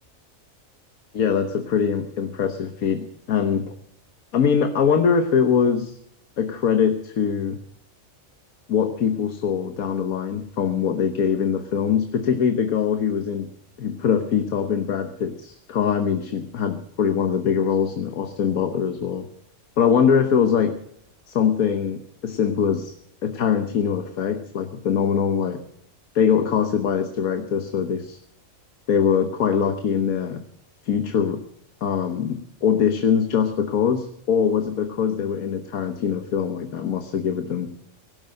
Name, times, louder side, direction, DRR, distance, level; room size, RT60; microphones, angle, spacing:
voice 1, 1.1-3.7 4.3-6.0 6.4-7.6 8.7-13.5 13.8-19.3 19.8-20.7 21.3-22.9 23.2-25.6 26.1-28.2 28.9-30.4 30.8-31.4 31.8-37.7, left 7 dB, 90° left, 7 dB, 1.5 m, -22 dB
17.5 x 11.5 x 6.5 m, 0.71 s
omnidirectional pair, 1.4 m